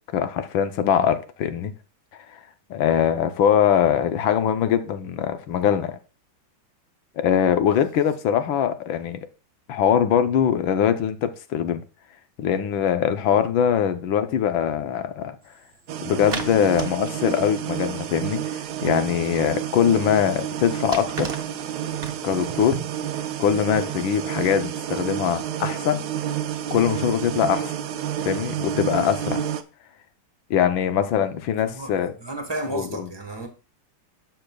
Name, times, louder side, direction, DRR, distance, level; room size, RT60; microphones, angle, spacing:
voice 1, 0.1-1.7 2.7-6.0 7.2-9.2 9.7-11.8 12.4-15.3 16.0-21.3 22.2-22.8 23.4-26.0 26.7-27.7 28.2-29.4 30.5-32.1 32.7-33.1, left 9 dB, 70° left, 1.5 m, -22 dB
sound 1, 15.4-25.0, right 4 dB, 35° right, 1.1 m, -40 dB
sound 2, 15.9-29.6, right 10 dB, 65° right, 1.0 m, -30 dB
voice 2, 32.2-33.5, right 2 dB, 15° right, 1.1 m, -32 dB
11.5 x 6.8 x 2.3 m
omnidirectional pair, 2.3 m